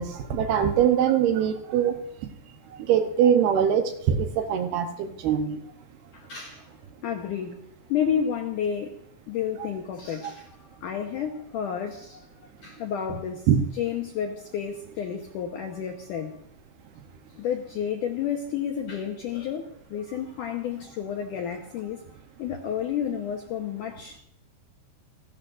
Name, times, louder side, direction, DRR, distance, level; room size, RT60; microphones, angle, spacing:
voice 1, 0.0-2.3 2.7-5.6 9.6-9.7 13.5-13.7, right 8 dB, 70° right, 2.6 m, -23 dB
voice 2, 6.1-6.6 7.0-7.6 7.9-9.0 9.3-12.3 12.6-13.5 13.8-16.4 17.4-22.0 22.4-24.2, left 8 dB, 75° left, 1.9 m, -31 dB
29.5 x 12.0 x 2.6 m
omnidirectional pair, 5.1 m